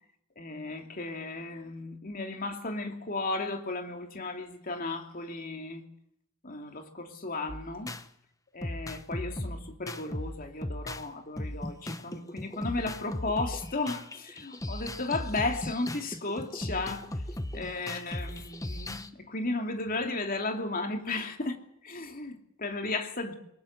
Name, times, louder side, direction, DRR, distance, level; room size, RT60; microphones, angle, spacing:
voice 1, 0.4-5.8 6.4-7.9 8.5-17.2 17.5-23.3, left 3 dB, 40° left, 2.8 m, -35 dB
sound 1, 7.5-8.0 8.6-11.1 11.4-19.1, left 1 dB, 15° left, 1.0 m, -37 dB
22.0 x 20.0 x 8.1 m
head